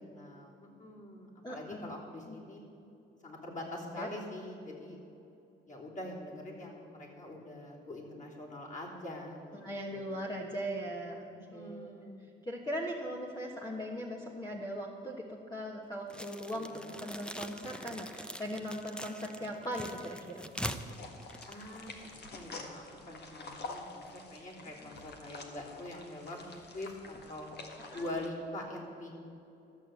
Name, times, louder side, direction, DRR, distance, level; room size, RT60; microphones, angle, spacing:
voice 1, 0.0-2.6 3.2-5.0 5.7-9.6 9.9-10.1 11.3-12.2 16.5-16.8 21.5-26.4 26.7-27.5 27.9-29.2, left 1 dB, 40° left, -3 dB, 3.2 m, -44 dB
voice 2, 1.4-1.9 2.3-2.4 4.0-4.1 9.5-11.9 12.4-20.5 27.9-28.1, equal, 20° left, -1 dB, 1.3 m, -39 dB
sound 1, 16.1-22.2, equal, 5° left, 0.7 m, -43 dB
sound 2, 20.8-28.3, left 3 dB, 55° left, 1.6 m, -48 dB
13.0 x 6.7 x 7.8 m, 2.7 s
cardioid pair, 90°, 20 cm